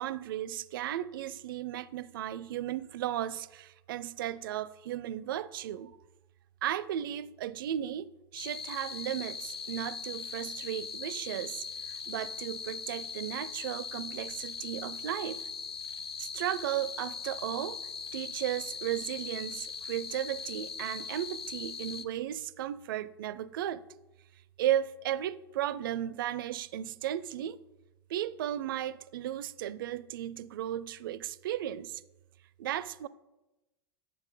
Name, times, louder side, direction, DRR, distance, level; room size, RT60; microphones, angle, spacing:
voice 1, 0.0-6.0 6.6-15.4 16.2-17.8 18.1-23.8 24.6-27.6 28.1-32.0 32.6-33.1, right 11 dB, 60° right, 0.4 m, -35 dB
sound 1, 8.4-22.0, left 6 dB, 85° left, 0.5 m, -40 dB
9.2 x 7.3 x 3.7 m
figure-of-eight pair, 85°, 13 cm